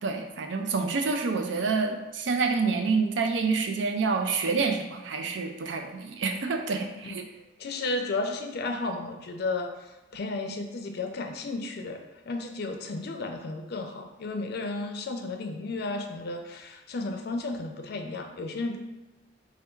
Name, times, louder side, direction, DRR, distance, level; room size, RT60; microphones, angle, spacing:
voice 1, 0.0-7.2, right 4 dB, 75° right, 5 dB, 0.5 m, -27 dB
voice 2, 7.6-12.0 12.3-18.8, left 3 dB, 60° left, 4 dB, 0.4 m, -33 dB
3.3 x 2.3 x 4.4 m, 1.1 s
head